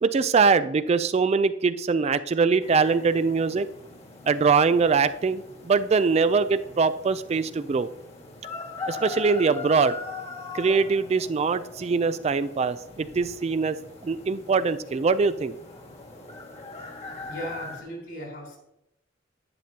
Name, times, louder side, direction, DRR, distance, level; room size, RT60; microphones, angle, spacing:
voice 1, 0.0-3.7 4.3-7.9 8.9-9.9 10.5-13.8 14.0-15.6, right 5 dB, 35° right, 13 dB, 0.3 m, -23 dB
sound 1, 2.6-17.8, left 3 dB, 35° left, 1.5 m, -41 dB
voice 2, 17.2-18.6, equal, 65° left, 0 dB, 3.6 m, -37 dB
10.5 x 9.2 x 2.8 m, 0.84 s
head